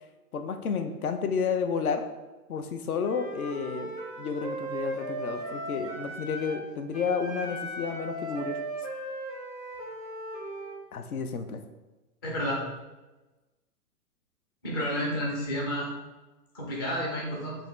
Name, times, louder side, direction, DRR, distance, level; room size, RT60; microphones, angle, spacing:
voice 1, 0.3-2.0 2.5-3.9 4.2-8.6 10.9-11.6, left 5 dB, 65° left, 7 dB, 0.6 m, -31 dB
Wind instrument woodwind instrument, 3.0-6.6 6.9-10.8, right 1 dB, 85° left, 1.4 m, -37 dB
voice 2, 12.2-12.6 14.6-15.9 16.5-17.6, equal, 15° left, -3 dB, 0.4 m, -30 dB
6.3 x 2.6 x 3.1 m, 1.1 s
figure-of-eight pair, 115°, 47 cm